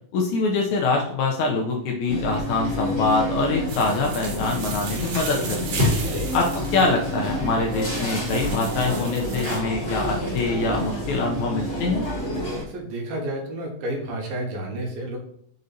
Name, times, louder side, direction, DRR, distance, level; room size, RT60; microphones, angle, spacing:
voice 1, 0.1-5.9 6.3-12.0, left 3 dB, 75° left, 0 dB, 1.8 m, -24 dB
sound 1, 2.1-12.6, left 1 dB, 15° left, 2.5 m, -28 dB
sound 2, 3.7-9.6, right 5 dB, 70° right, 2.6 m, -36 dB
voice 2, 12.6-15.2, right 1 dB, 90° right, 0 dB, 3.2 m, -31 dB
6.5 x 4.1 x 4.0 m, 0.66 s
omnidirectional pair, 4.1 m